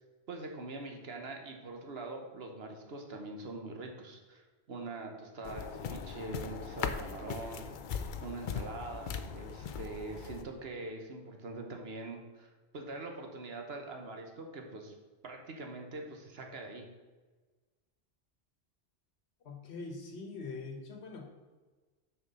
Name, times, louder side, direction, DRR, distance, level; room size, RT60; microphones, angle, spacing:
voice 1, 0.3-7.6 8.2-14.9 15.2-16.9, right 2 dB, 70° right, 3 dB, 1.3 m, -43 dB
sound 1, 5.4-10.4, left 6 dB, 60° left, 0.6 m, -39 dB
voice 2, 19.4-21.3, left 3 dB, 85° left, 3 dB, 1.4 m, -43 dB
6.5 x 4.9 x 5.5 m, 1.3 s
omnidirectional pair, 1.1 m